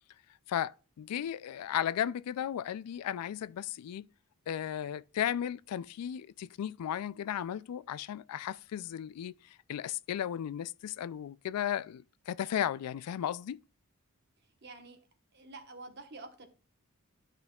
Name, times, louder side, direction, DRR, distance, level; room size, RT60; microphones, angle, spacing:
voice 1, 0.5-4.1 4.5-13.6, left 10 dB, 90° left, 0.3 m, -35 dB
voice 2, 14.6-15.0 15.3-16.5, right 3 dB, 50° right, 1.2 m, -48 dB
13.0 x 5.2 x 2.3 m
head